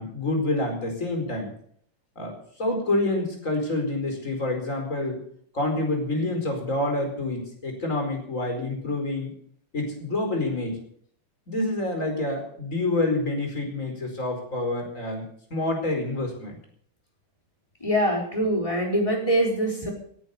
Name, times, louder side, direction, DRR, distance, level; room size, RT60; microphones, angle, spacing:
voice 1, 0.0-1.5 2.2-2.3 2.6-5.2 5.5-9.3 9.7-10.8 11.5-15.2 15.5-16.6, left 2 dB, 35° left, 3 dB, 5.0 m, -27 dB
voice 2, 17.8-19.9, equal, 15° left, 0 dB, 4.7 m, -24 dB
17.5 x 10.5 x 7.0 m, 0.62 s
omnidirectional pair, 2.3 m